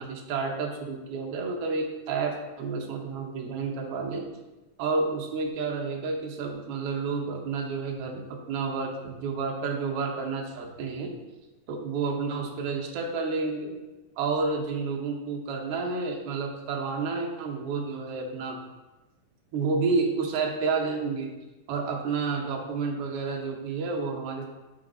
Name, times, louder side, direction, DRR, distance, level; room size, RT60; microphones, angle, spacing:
voice 1, 0.0-4.3 4.8-11.2 11.7-13.8 14.2-18.6 19.5-21.3 21.7-24.5, right 4 dB, 65° right, 1 dB, 1.6 m, -30 dB
9.2 x 3.9 x 3.9 m, 1.1 s
omnidirectional pair, 3.5 m